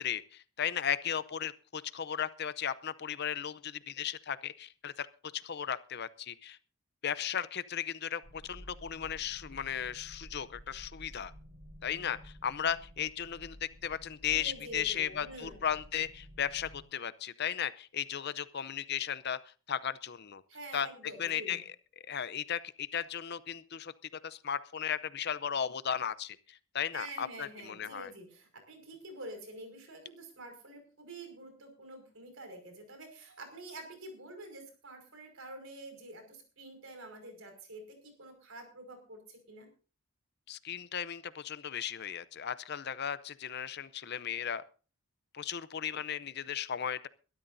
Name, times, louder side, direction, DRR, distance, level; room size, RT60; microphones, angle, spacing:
voice 1, 0.0-5.1 5.3-6.6 7.0-11.3 11.8-19.4 19.7-20.4 20.7-20.9 21.2-21.6 22.1-23.9 24.2-28.1 40.5-44.6 45.3-47.1, left 8 dB, 50° left, 15 dB, 0.6 m, -36 dB
sound 1, 8.2-16.8, equal, 85° right, 4.7 m, -52 dB
voice 2, 14.2-15.6 20.5-21.6 26.9-39.7, right 1 dB, 65° right, 5 dB, 5.4 m, -47 dB
22.5 x 13.0 x 2.7 m, 0.36 s
head